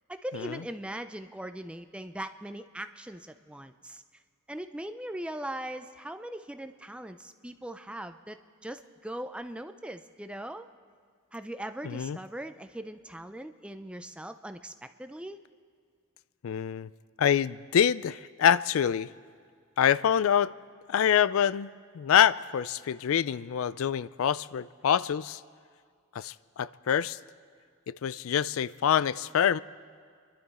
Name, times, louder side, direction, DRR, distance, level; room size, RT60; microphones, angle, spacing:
voice 1, 0.1-4.0 4.5-10.7 11.3-15.4, right 1 dB, 5° right, 9 dB, 0.4 m, -40 dB
voice 2, 11.8-12.2 16.4-16.9 17.2-19.1 19.8-20.5 20.9-25.4 26.1-27.2 27.9-29.6, left 8 dB, 70° left, 18 dB, 0.3 m, -26 dB
28.0 x 12.0 x 4.2 m, 2.1 s
head